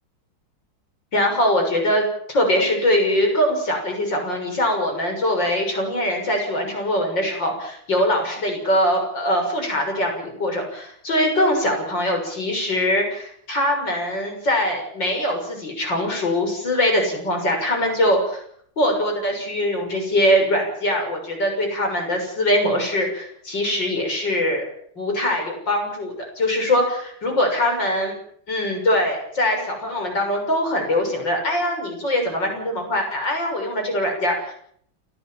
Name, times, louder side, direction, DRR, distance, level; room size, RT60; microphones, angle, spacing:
voice 1, 1.1-18.4 18.8-24.6 25.0-28.1 28.5-34.5, left 1 dB, 60° left, 3 dB, 7.3 m, -22 dB
30.0 x 13.5 x 7.3 m, 0.64 s
omnidirectional pair, 2.2 m